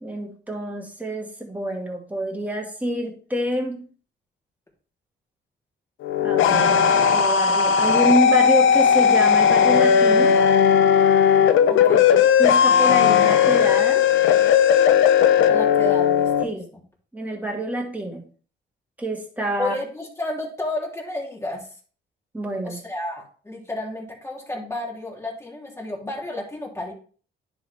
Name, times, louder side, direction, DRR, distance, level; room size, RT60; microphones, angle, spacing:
voice 1, 0.0-3.9 6.2-10.4 12.4-14.0 16.4-16.7 17.1-18.2 19.0-19.8 22.3-22.8, equal, 10° right, 0 dB, 2.2 m, -27 dB
electric guitar squeal, 6.0-16.4, left 7 dB, 80° left, 0.7 m, -17 dB
voice 2, 11.7-12.3 15.5-16.6 19.6-21.7 22.6-26.9, left 1 dB, 15° left, -2 dB, 3.2 m, -32 dB
10.0 x 4.1 x 3.4 m, 0.41 s
cardioid pair, 90°, 20 cm